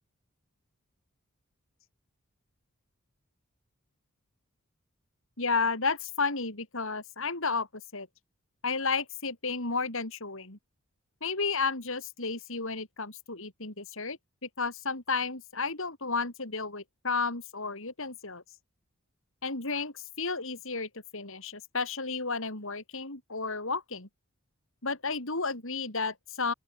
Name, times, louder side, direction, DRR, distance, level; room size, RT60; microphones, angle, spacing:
voice 1, 5.4-7.7 7.9-8.1 8.6-10.6 11.2-18.4 19.4-24.1 24.8-26.5, left 4 dB, 65° left, 4.3 m, -32 dB
open air
head